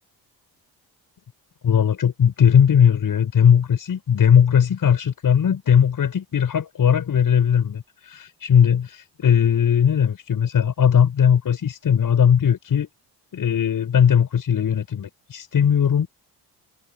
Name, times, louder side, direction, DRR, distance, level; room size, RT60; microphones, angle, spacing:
voice 1, 1.6-12.9 13.3-16.1, left 8 dB, 55° left, 7.2 m, -18 dB
cardioid pair, 105°, 41 cm